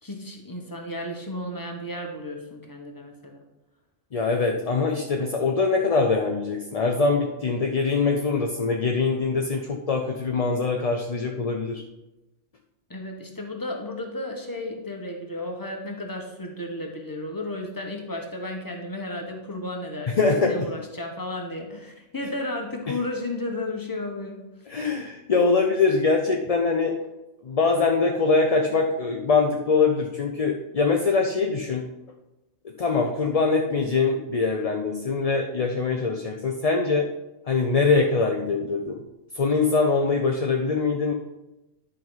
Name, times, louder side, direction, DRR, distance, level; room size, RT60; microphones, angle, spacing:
voice 1, 0.0-3.4 12.9-24.4, left 1 dB, 15° left, 1 dB, 1.2 m, -33 dB
voice 2, 4.1-11.8 20.2-20.7 24.7-26.9 27.4-31.8 32.6-37.1 37.5-39.0 39.3-41.1, left 4 dB, 40° left, 2 dB, 0.6 m, -23 dB
10.5 x 5.5 x 3.9 m, 0.97 s
omnidirectional pair, 1.3 m